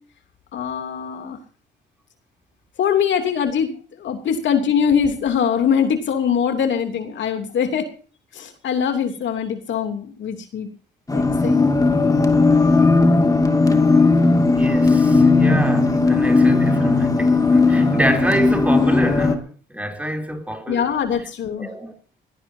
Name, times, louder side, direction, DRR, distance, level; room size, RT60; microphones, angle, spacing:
voice 1, 0.5-1.4 2.8-7.9 8.3-10.7 11.1-11.7 20.7-21.7, left 7 dB, 70° left, 3.0 m, -22 dB
sound 1, 11.1-19.3, left 3 dB, 15° left, 2.4 m, -16 dB
voice 2, 14.6-19.5 19.7-20.9 21.6-22.0, right 1 dB, 5° right, 3.5 m, -26 dB
20.5 x 17.5 x 2.8 m
cardioid pair, 90°, 20 cm